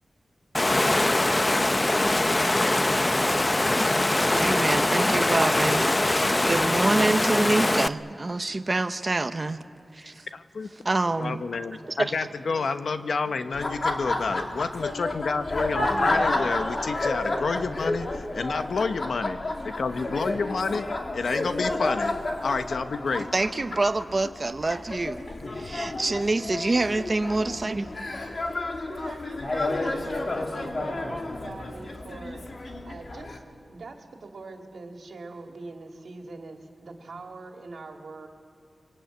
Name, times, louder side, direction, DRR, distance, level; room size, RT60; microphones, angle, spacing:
Water, 0.5-7.9, left 1 dB, 25° left, 0.6 m, -22 dB
voice 1, 4.3-9.6 9.9-10.3 10.8-11.4 12.1-12.3 23.2-25.2 25.5-27.9, right 2 dB, 35° right, 8 dB, 0.8 m, -26 dB
voice 2, 10.3-10.7 11.2-19.4 19.6-20.8 21.1-22.1 22.4-23.3, left 4 dB, 75° left, 9 dB, 1.0 m, -29 dB
voice 3, 11.8-12.8 13.2-13.4 27.3-27.8 28.9-32.4 32.9-38.3, right 3 dB, 80° right, 3 dB, 2.6 m, -43 dB
Laughter, 13.5-33.4, left 2 dB, 50° left, 2.3 m, -31 dB
23.5 x 23.5 x 9.4 m, 2.3 s
wide cardioid pair, 75°, 0 cm